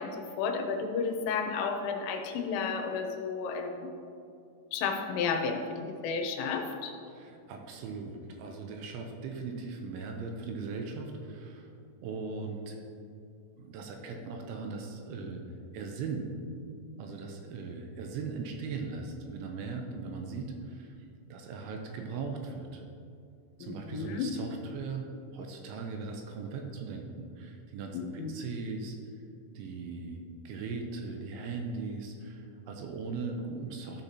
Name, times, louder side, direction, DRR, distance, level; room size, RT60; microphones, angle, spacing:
voice 1, 0.0-3.9 4.7-6.9 23.6-24.3 27.9-28.3, left 5 dB, 85° left, 4 dB, 3.4 m, -32 dB
voice 2, 7.1-11.7 12.0-12.8 13.6-15.4 15.7-16.3 17.0-21.0 21.3-22.8 23.6-25.0 25.3-29.0 29.6-30.2 30.5-34.0, right 4 dB, 80° right, 3 dB, 2.9 m, -39 dB
13.0 x 6.8 x 2.9 m, 2.5 s
omnidirectional pair, 5.7 m